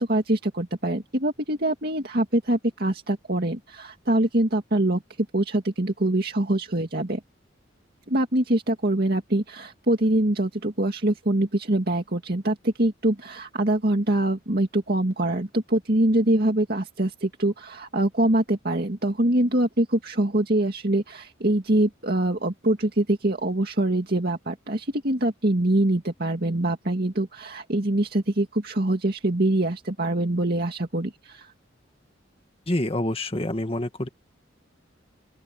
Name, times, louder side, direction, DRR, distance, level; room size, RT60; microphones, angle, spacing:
voice 1, 0.0-5.0 5.3-7.2 8.1-31.5, right 1 dB, 55° right, 2.2 m, -24 dB
voice 2, 32.7-34.1, left 1 dB, 30° left, 1.9 m, -27 dB
open air
head